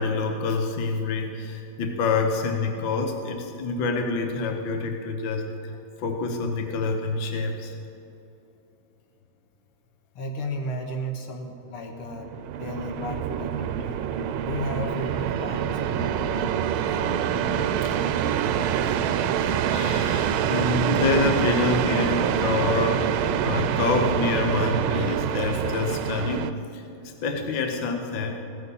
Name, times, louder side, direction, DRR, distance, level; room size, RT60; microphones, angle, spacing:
voice 1, 0.0-5.7 6.0-7.8 17.8-18.0 19.7-23.1 23.4-28.4, left 4 dB, 65° left, 4 dB, 1.7 m, -27 dB
voice 2, 10.2-12.3 12.6-14.0 14.4-17.3, equal, 80° left, 2 dB, 2.4 m, -34 dB
sound 1, 12.1-26.5, right 9 dB, 80° right, 1.4 m, -26 dB
16.5 x 14.5 x 4.1 m, 2.9 s
omnidirectional pair, 2.4 m